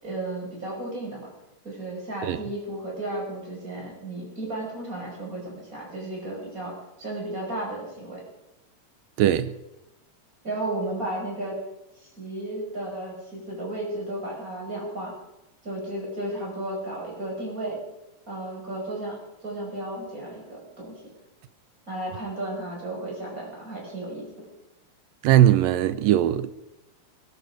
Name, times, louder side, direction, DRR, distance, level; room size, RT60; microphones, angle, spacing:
voice 1, 0.0-1.3 1.6-8.2 10.4-11.6 12.0-15.1 15.6-17.8 18.3-21.0 21.9-24.5, right 1 dB, 20° right, -2 dB, 5.9 m, -34 dB
voice 2, 9.2-9.6 25.2-26.5, right 12 dB, 80° right, 13 dB, 2.5 m, -19 dB
21.0 x 12.0 x 5.0 m, 0.92 s
omnidirectional pair, 4.0 m